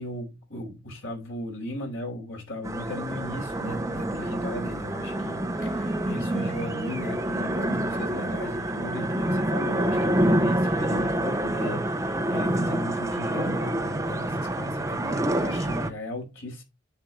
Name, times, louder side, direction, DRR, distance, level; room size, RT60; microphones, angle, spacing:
voice 1, 0.0-16.6, left 1 dB, 85° left, 5.3 m, -36 dB
sound 1, 2.6-15.9, right 1 dB, 15° right, 0.7 m, -27 dB
sound 2, 3.3-8.7 9.2-14.1, right 2 dB, 5° left, 3.6 m, -40 dB
10.5 x 7.5 x 3.2 m
head